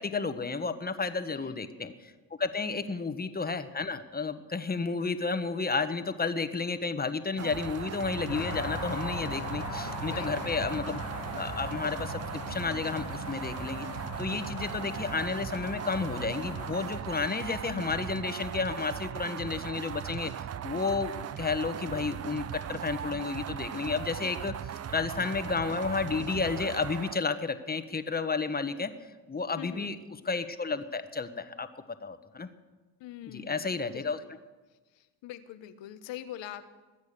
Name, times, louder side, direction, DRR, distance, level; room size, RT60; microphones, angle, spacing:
voice 1, 0.0-2.1 2.4-11.0 11.3-12.2 12.5-13.9 14.2-20.3 20.6-28.9 29.3-29.9 30.2-31.7 32.0-32.5 33.3-34.2, left 4 dB, 20° left, 11 dB, 1.3 m, -32 dB
voice 2, 1.3-1.7 2.8-3.1 10.1-10.5 29.5-30.0 33.0-34.3 34.9-36.7, left 11 dB, 65° left, 12 dB, 1.2 m, -44 dB
sound 1, 7.4-27.2, right 10 dB, 35° right, 0.6 m, -38 dB
sound 2, 8.3-16.9, left 4 dB, 85° left, 3.6 m, -39 dB
21.5 x 8.2 x 6.8 m, 1.3 s
supercardioid pair, 70°, 47 cm